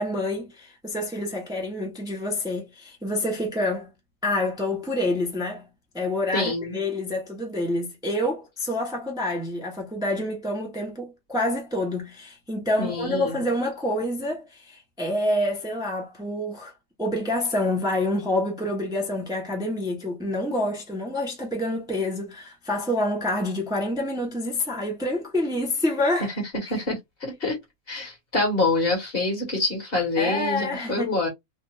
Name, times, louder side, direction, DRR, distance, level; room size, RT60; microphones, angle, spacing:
voice 1, 0.0-3.9 4.2-5.6 5.9-16.7 17.0-26.3 30.2-31.1, left 1 dB, 5° right, 0.8 m, -27 dB
voice 2, 6.3-6.8 12.8-13.4 26.6-27.6 27.9-31.3, left 2 dB, 45° left, 1.6 m, -26 dB
3.3 x 2.5 x 2.6 m
omnidirectional pair, 1.4 m